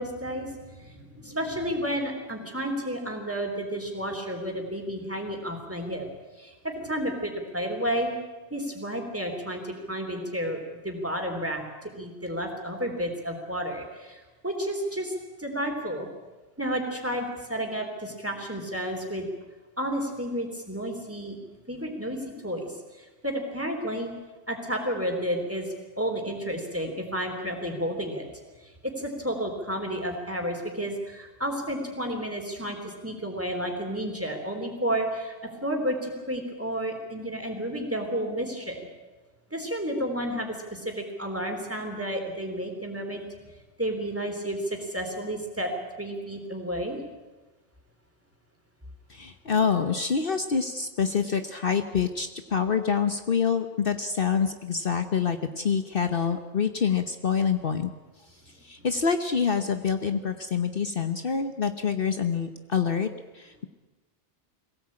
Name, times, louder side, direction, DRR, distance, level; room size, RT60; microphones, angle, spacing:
voice 1, 0.0-6.1 6.4-8.1 8.5-15.1 15.4-16.1 16.6-19.3 19.8-21.4 21.7-24.1 24.5-28.3 28.6-35.3 35.6-38.9 39.5-43.2 43.8-45.7 46.0-47.0, equal, 10° right, 2 dB, 3.6 m, -31 dB
voice 2, 49.1-57.9 58.5-63.1 63.3-63.6, left 6 dB, 55° left, 7 dB, 1.1 m, -26 dB
22.5 x 17.0 x 8.7 m, 1.2 s
omnidirectional pair, 1.2 m